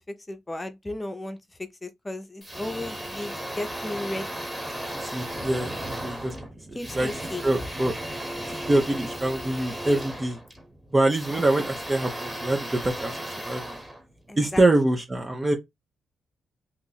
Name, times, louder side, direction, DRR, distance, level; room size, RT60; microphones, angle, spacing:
voice 1, 0.3-1.4 1.8-4.5 6.7-7.7 14.3-14.6, left 1 dB, 20° left, 0.8 m, -35 dB
sound 1, 2.4-14.6, right 1 dB, 5° right, 1.2 m, -35 dB
voice 2, 4.9-5.8 6.0-6.3 6.9-7.1 7.4-7.9 8.5-10.4 10.9-13.2 13.4-13.8 14.4-15.5, right 2 dB, 25° right, 0.7 m, -24 dB
2.9 x 2.5 x 4.0 m
cardioid pair, 75°, 0 cm